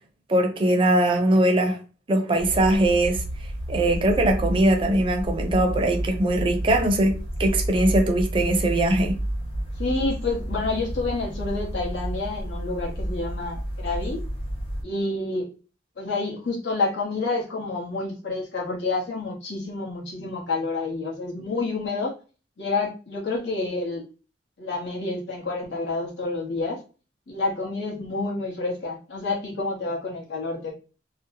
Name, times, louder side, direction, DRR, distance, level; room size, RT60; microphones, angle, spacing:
voice 1, 0.3-1.8 2.1-3.2 3.7-9.2, right 1 dB, 30° right, 0.4 m, -21 dB
sound 1, 2.4-14.8, right 1 dB, 30° left, 1.0 m, -30 dB
voice 2, 9.8-14.2 14.8-15.5 16.0-22.1 22.6-24.0 24.6-26.8 27.3-30.7, left 3 dB, 75° left, 0.9 m, -28 dB
2.7 x 2.0 x 2.6 m
head